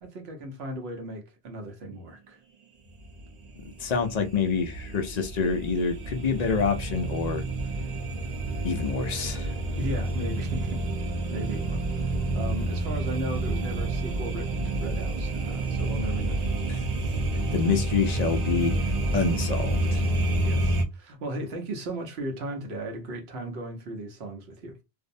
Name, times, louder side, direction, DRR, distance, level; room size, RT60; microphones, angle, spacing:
voice 1, 0.0-2.4 9.8-10.8 11.3-16.4 20.4-24.8, right 1 dB, 75° right, 1.0 m, -36 dB
sound 1, 2.9-20.8, right 2 dB, 50° right, 0.5 m, -29 dB
voice 2, 3.6-7.4 8.6-9.5 16.7-16.8 17.5-18.7 19.1-20.0, left 5 dB, 55° left, 0.5 m, -27 dB
2.6 x 2.0 x 2.5 m
omnidirectional pair, 1.1 m